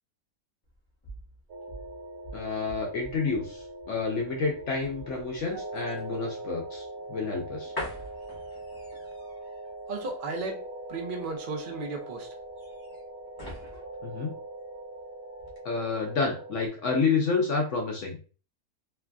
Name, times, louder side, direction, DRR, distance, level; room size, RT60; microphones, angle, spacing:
sound 1, 0.6-15.0 15.4-15.6, equal, 20° left, 0.6 m, -46 dB
sound 2, 1.5-16.7, right 2 dB, 90° right, 1.2 m, -42 dB
voice 1, 2.3-7.7 14.0-14.3 15.6-18.2, left 4 dB, 60° left, 0 dB, 0.9 m, -29 dB
voice 2, 9.9-10.6 10.9-12.3, right 3 dB, 65° right, 3 dB, 0.5 m, -34 dB
3.2 x 2.4 x 2.2 m, 0.37 s
omnidirectional pair, 1.6 m